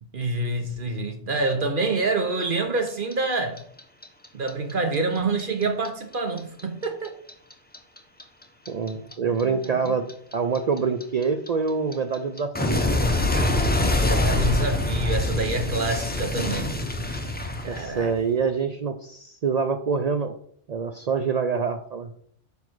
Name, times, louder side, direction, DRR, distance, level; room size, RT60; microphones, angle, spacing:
voice 1, 0.1-3.6 4.3-7.1 9.4-10.1 14.0-16.8 17.6-18.2, right 3 dB, 50° right, 0.9 m, -27 dB
Clock, 2.9-5.9 6.1-9.1 9.4-18.3, left 2 dB, 10° left, 0.7 m, -25 dB
voice 2, 8.7-10.0 10.3-12.9 17.7-20.3 20.7-22.1, right 5 dB, 70° right, 0.3 m, -26 dB
5.2 x 4.8 x 5.9 m
omnidirectional pair, 1.2 m